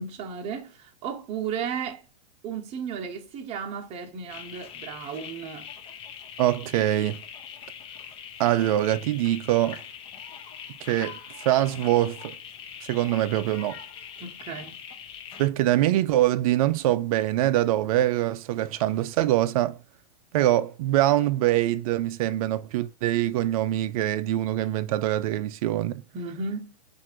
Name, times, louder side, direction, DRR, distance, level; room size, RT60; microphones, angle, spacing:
voice 1, 0.0-2.0 2.4-5.7 14.2-14.8 26.1-26.8, right 6 dB, 30° right, 1.0 m, -34 dB
sound 1, 4.3-15.5, left 8 dB, 25° left, 0.8 m, -42 dB
voice 2, 6.4-7.2 8.4-9.8 10.9-11.2 11.4-12.3 12.9-13.8 15.4-19.8 20.3-26.0, right 14 dB, 60° right, 0.5 m, -24 dB
4.6 x 2.6 x 4.4 m
hypercardioid pair, 135°, 21 cm